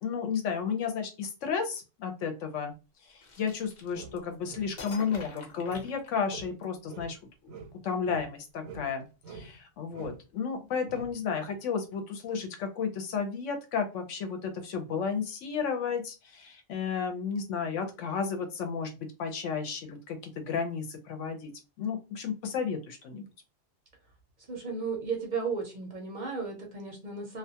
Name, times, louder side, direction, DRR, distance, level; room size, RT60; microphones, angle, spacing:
voice 1, 0.0-2.7 3.1-7.2 7.4-18.9 19.2-21.5 21.8-23.3, left 6 dB, 70° left, 5 dB, 0.9 m, -33 dB
sound 1, 3.2-4.3 4.8-6.6, left 4 dB, 45° left, 0.6 m, -47 dB
sound 2, 3.9-6.0 6.3-6.6 6.9-9.0 9.2-9.6 9.9-10.3 10.9-11.2, right 3 dB, 80° right, 1.0 m, -46 dB
voice 2, 24.5-27.4, right 4 dB, 45° right, 0 dB, 0.6 m, -34 dB
2.4 x 2.2 x 2.7 m, 0.29 s
omnidirectional pair, 1.4 m